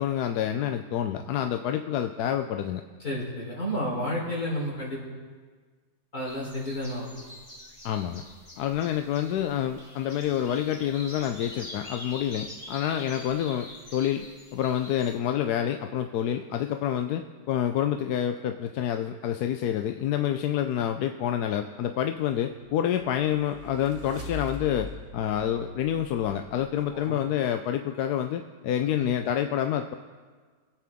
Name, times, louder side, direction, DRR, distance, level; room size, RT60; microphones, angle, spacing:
voice 1, 0.0-2.8 7.8-8.2 8.6-14.3 14.5-29.9, left 10 dB, 75° left, 7 dB, 1.0 m, -28 dB
voice 2, 3.0-5.0 6.1-7.1 24.1-24.2 26.9-27.2 28.9-29.1, equal, 60° left, -5 dB, 4.2 m, -31 dB
sound 1, 6.3-15.2, left 1 dB, 25° left, 1.8 m, -45 dB
sound 2, 23.1-26.9, left 1 dB, 30° right, 2.2 m, -42 dB
25.0 x 8.6 x 3.6 m, 1.5 s
omnidirectional pair, 1.8 m